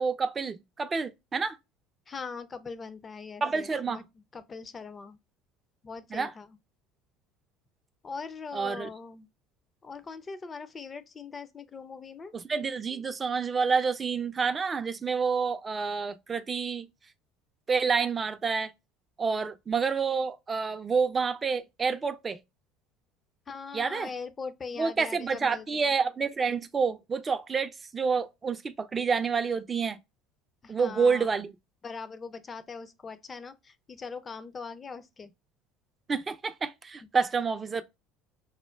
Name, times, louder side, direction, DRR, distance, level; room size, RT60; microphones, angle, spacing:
voice 1, 0.0-1.6 3.4-4.0 6.1-6.3 8.5-8.9 12.3-16.9 17.7-18.7 19.2-22.4 23.7-24.1 24.8-30.0 30.7-31.5 36.1-37.8, right 5 dB, 25° right, 0.4 m, -28 dB
voice 2, 2.1-4.0 4.3-5.2 5.8-6.6 8.0-9.3 9.8-12.3 23.5-25.7 30.6-31.3 31.8-35.3, left 5 dB, 30° left, 0.5 m, -41 dB
5.5 x 2.1 x 2.2 m
figure-of-eight pair, 60°, 0 cm